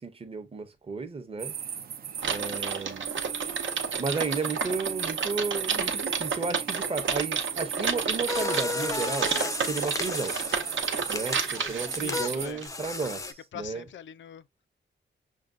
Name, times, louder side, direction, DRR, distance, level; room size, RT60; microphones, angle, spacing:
voice 1, 0.0-1.5 2.2-3.1 4.0-9.3 9.6-10.4 11.1-13.8, right 4 dB, 30° right, 0.7 m, -33 dB
sound 1, 1.4-12.5, right 8 dB, 50° right, 0.4 m, -36 dB
Typing, 2.2-12.7, right 5 dB, 80° right, 0.8 m, -31 dB
sound 2, 8.3-13.3, left 3 dB, 15° left, 0.4 m, -34 dB
voice 2, 12.0-12.6 13.5-14.4, left 10 dB, 70° left, 0.4 m, -41 dB
6.3 x 2.2 x 2.4 m
wide cardioid pair, 145°, 20 cm